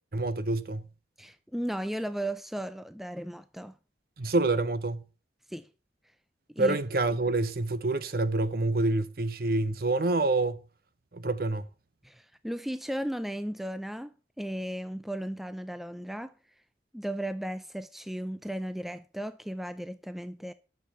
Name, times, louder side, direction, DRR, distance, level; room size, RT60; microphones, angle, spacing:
voice 1, 0.1-0.9 4.2-5.0 6.6-10.6 11.1-11.7, right 2 dB, 55° right, 0.9 m, -27 dB
voice 2, 1.2-3.8 5.5-5.7 6.5-6.8 12.0-16.3 16.9-20.5, right 1 dB, ahead, 0.4 m, -35 dB
10.5 x 6.7 x 6.6 m
head